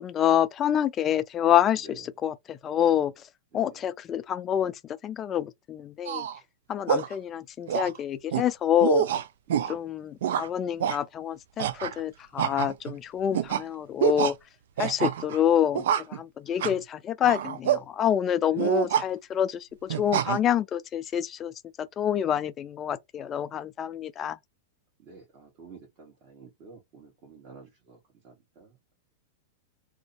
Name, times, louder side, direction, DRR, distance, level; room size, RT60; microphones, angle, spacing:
voice 1, 0.0-3.1 3.5-4.7 5.0-6.3 6.7-9.1 9.7-14.3 14.8-19.7 20.0-21.5 22.0-24.4, left 10 dB, 30° left, 0.4 m, -27 dB
sound 1, 6.1-6.4 6.9-7.1 7.7-8.0 8.3-8.5 8.8-9.7 10.2-10.5 10.8-11.0 11.6-12.0 12.4-12.9 13.3-13.6 14.0-14.3 14.8-15.4 15.7-16.2 16.6-16.8 17.2-17.8 18.6-19.1 19.9-20.4, right 9 dB, 70° right, 0.3 m, -26 dB
voice 2, 25.0-28.0 28.2-28.8, right 4 dB, 45° right, 1.0 m, -50 dB
2.5 x 2.1 x 2.5 m
hypercardioid pair, 110°, 0 cm